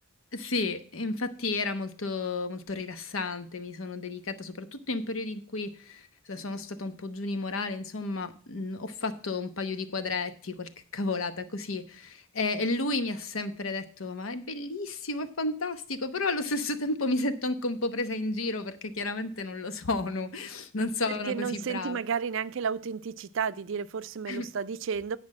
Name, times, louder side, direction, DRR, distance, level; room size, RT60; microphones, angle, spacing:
voice 1, 0.3-22.0 24.3-24.5, left 2 dB, 75° left, 1.0 m, -32 dB
voice 2, 21.1-25.2, right 6 dB, 65° right, 0.4 m, -32 dB
9.6 x 5.1 x 7.3 m
head